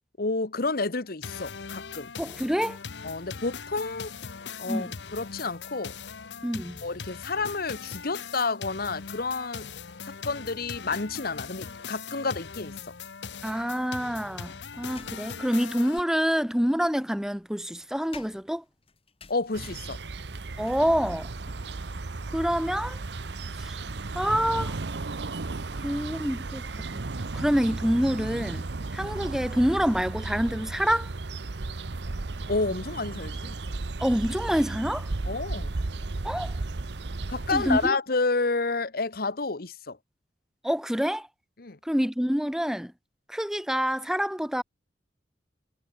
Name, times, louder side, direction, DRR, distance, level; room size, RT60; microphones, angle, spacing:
voice 1, 0.2-2.1 3.0-4.1 4.6-5.9 6.8-9.7 10.0-12.7 19.3-20.0 32.5-33.7 35.3-35.7 37.3-40.0 41.6-41.8, left 3 dB, 55° left, 1.3 m, -30 dB
sound 1, 1.2-16.0, left 6 dB, 75° left, 0.9 m, -40 dB
voice 2, 2.2-2.8 4.7-4.9 6.4-6.8 13.4-18.6 20.6-21.3 22.3-23.0 23.6-23.8 24.1-24.8 25.8-27.0 27.3-28.6 28.9-31.1 34.0-35.1 36.2-36.5 37.5-38.0 40.6-41.3 41.8-42.9 43.3-44.6, equal, 5° right, 1.0 m, -27 dB
sound 2, 14.7-15.6 16.7-25.4, left 4 dB, 35° left, 3.9 m, -55 dB
park birds church bells atmo XY, 19.5-37.9, right 3 dB, 70° right, 0.9 m, -34 dB
head